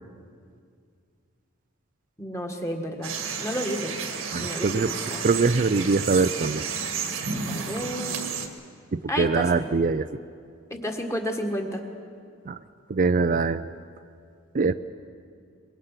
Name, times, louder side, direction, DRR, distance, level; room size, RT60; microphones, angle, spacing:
voice 1, 2.2-3.1 3.4-3.9 4.4-4.7 5.1-5.2 7.5-8.2 9.1-9.5 10.7-11.8, equal, 15° left, 3 dB, 1.7 m, -30 dB
sound 1, 3.0-8.5, right 5 dB, 90° right, 1.9 m, -31 dB
voice 2, 4.3-4.9 5.2-6.7 8.9-10.1 12.5-12.6 12.9-13.6 14.5-14.7, right 4 dB, 40° right, 11 dB, 0.4 m, -23 dB
23.5 x 22.0 x 5.8 m, 2.3 s
head